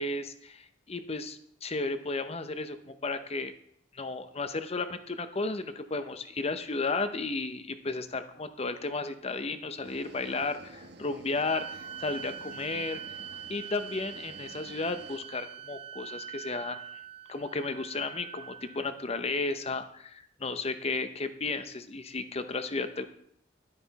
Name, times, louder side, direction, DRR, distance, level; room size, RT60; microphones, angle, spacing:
voice 1, 0.0-3.5 3.9-13.0 13.5-16.8 17.3-23.1, left 3 dB, 35° left, 10 dB, 0.8 m, -33 dB
sound 1, 9.8-15.2, right 2 dB, 60° right, 1.1 m, -51 dB
sound 2, 11.4-18.9, right 8 dB, 30° right, 0.4 m, -43 dB
11.0 x 9.9 x 4.1 m, 0.70 s
head